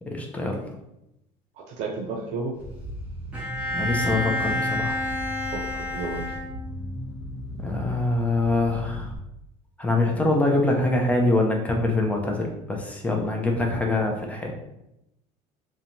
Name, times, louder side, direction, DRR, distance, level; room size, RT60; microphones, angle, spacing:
voice 1, 0.1-0.6 3.7-5.0 7.6-9.1 9.8-14.5, left 2 dB, 10° left, 1 dB, 0.3 m, -24 dB
voice 2, 1.7-2.5 5.5-6.3, right 3 dB, 55° right, 0 dB, 0.4 m, -32 dB
sound 1, 2.6-9.2, equal, 60° left, 0.9 m, -37 dB
Bowed string instrument, 3.3-7.0, left 1 dB, 10° right, 0.7 m, -29 dB
2.5 x 2.2 x 2.8 m, 0.86 s
cardioid pair, 145°, 14 cm